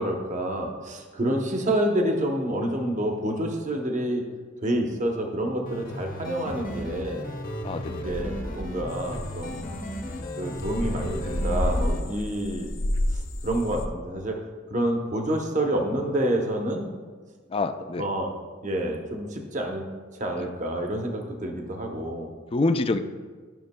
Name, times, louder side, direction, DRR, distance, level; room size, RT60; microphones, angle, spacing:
voice 1, 0.0-4.2 4.6-7.3 7.9-9.7 10.4-12.7 13.1-14.4 14.7-16.9 18.0-18.3 18.6-19.8 20.1-22.3, right 1 dB, 40° right, 2 dB, 0.8 m, -28 dB
sound 1, 5.7-12.0, equal, 50° left, 1.1 m, -34 dB
voice 2, 7.6-8.0 17.5-18.1 20.4-20.5 22.5-23.0, left 2 dB, 30° left, 9 dB, 0.3 m, -26 dB
sound 2, 8.9-13.9, left 1 dB, 85° left, 0.6 m, -30 dB
12.5 x 6.3 x 2.2 m, 1.5 s
head